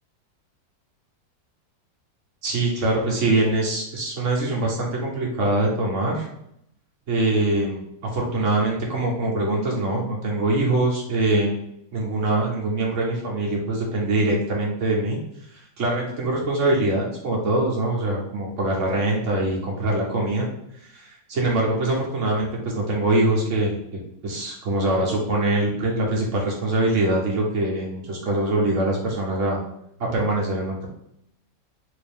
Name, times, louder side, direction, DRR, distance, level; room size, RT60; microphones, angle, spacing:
voice 1, 2.4-6.3 7.1-7.8 8.1-11.5 11.9-15.2 15.5-20.5 20.7-23.7 24.2-29.6 30.0-30.9, right 2 dB, 50° right, -2 dB, 1.2 m, -23 dB
3.6 x 2.8 x 3.5 m, 0.75 s
omnidirectional pair, 2.0 m